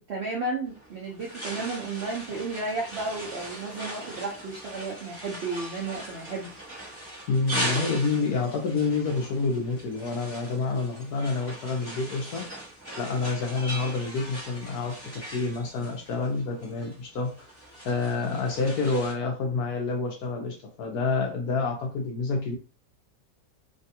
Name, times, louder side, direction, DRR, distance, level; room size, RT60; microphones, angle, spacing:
voice 1, 0.0-6.5, right 3 dB, 75° right, -3 dB, 0.6 m, -33 dB
sound 1, 0.7-19.1, right 1 dB, 10° left, 0.6 m, -39 dB
voice 2, 7.3-12.5 13.0-17.3 17.8-22.6, left 4 dB, 65° left, 2 dB, 1.0 m, -28 dB
3.3 x 2.3 x 2.7 m, 0.33 s
omnidirectional pair, 2.0 m